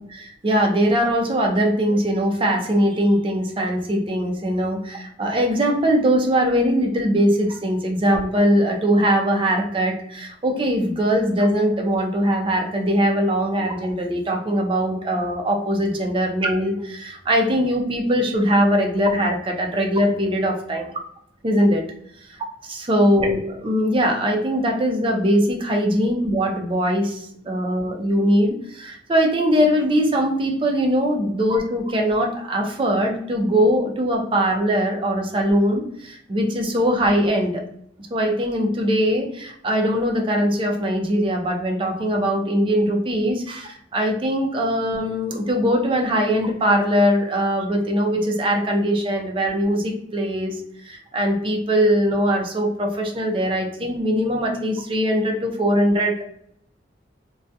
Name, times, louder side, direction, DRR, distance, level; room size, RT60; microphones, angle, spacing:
voice 1, 0.1-21.0 21.4-21.8 22.9-27.2 27.5-37.6 38.1-56.3, equal, 30° right, 2 dB, 0.4 m, -21 dB
2.3 x 2.1 x 2.6 m, 0.71 s
head